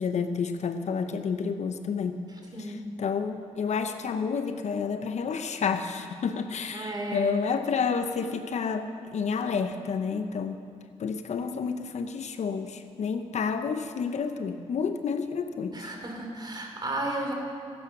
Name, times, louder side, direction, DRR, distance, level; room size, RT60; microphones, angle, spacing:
voice 1, 0.0-2.3 2.6-10.6 11.0-15.9, left 5 dB, 65° left, 8 dB, 0.8 m, -30 dB
voice 2, 2.5-2.9 6.7-7.3 15.7-17.3, right 1 dB, 35° right, 2 dB, 2.8 m, -33 dB
15.0 x 8.8 x 6.0 m, 2.3 s
cardioid pair, 60°, 13 cm